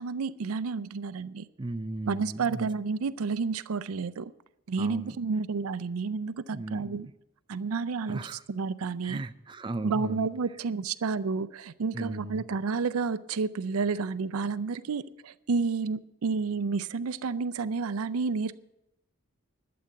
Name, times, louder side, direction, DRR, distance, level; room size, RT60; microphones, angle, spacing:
voice 1, 0.0-1.5 2.1-4.3 4.7-7.1 7.5-9.2 9.8-18.6, right 4 dB, 85° right, 16 dB, 0.5 m, -30 dB
voice 2, 1.6-2.7 4.8-5.1 6.5-7.0 8.1-8.4 9.0-10.3 11.9-12.4, right 2 dB, 20° right, 9 dB, 0.5 m, -36 dB
12.5 x 7.8 x 8.2 m, 0.88 s
head